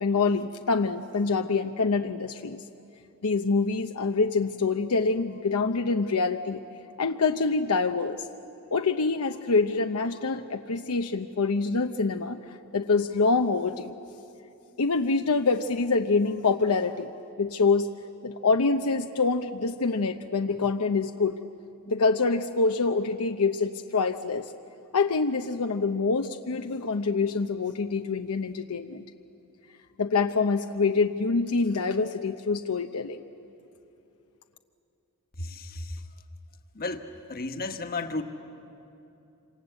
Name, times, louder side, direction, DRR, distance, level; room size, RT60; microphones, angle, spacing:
voice 1, 0.0-2.6 3.2-6.6 7.0-8.3 8.7-13.9 14.8-17.1 17.4-17.9 18.2-21.4 21.9-24.5 24.9-29.0 30.0-33.2, left 4 dB, 75° left, 6 dB, 0.7 m, -25 dB
voice 2, 35.4-36.0 36.7-38.2, left 2 dB, 45° left, 6 dB, 1.4 m, -33 dB
27.0 x 26.5 x 8.1 m, 2.8 s
head